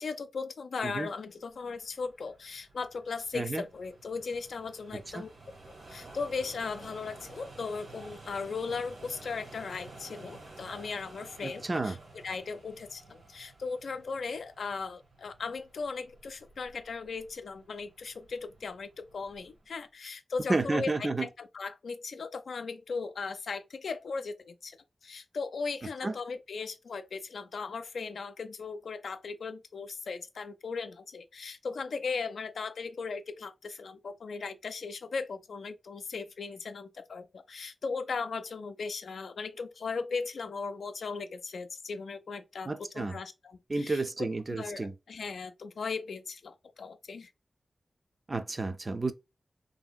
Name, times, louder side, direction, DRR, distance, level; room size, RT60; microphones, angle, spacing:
voice 1, 0.0-5.3 5.7-12.0 12.2-24.8 25.0-47.3, left 4 dB, 85° left, 0.4 m, -37 dB
sound 1, 1.4-19.7, right 2 dB, 80° right, 1.5 m, -52 dB
voice 2, 11.4-12.0 20.5-21.3 26.0-26.1 42.7-43.1 43.7-44.9 48.3-49.1, right 3 dB, 35° right, 0.4 m, -31 dB
3.0 x 2.7 x 2.2 m
wide cardioid pair, 90°, 0 cm